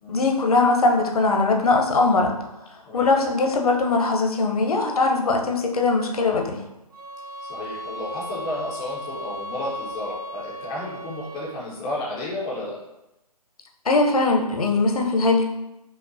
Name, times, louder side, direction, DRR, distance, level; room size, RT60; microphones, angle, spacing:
voice 1, 0.1-2.4 2.9-6.6 13.9-15.4, left 3 dB, 70° left, 2 dB, 0.7 m, -20 dB
sound 1, 6.9-11.7, equal, 65° right, 0.7 m, -36 dB
voice 2, 7.5-12.8, left 1 dB, 10° left, -5 dB, 0.3 m, -32 dB
5.1 x 2.1 x 2.6 m, 0.93 s
figure-of-eight pair, 140°, 20 cm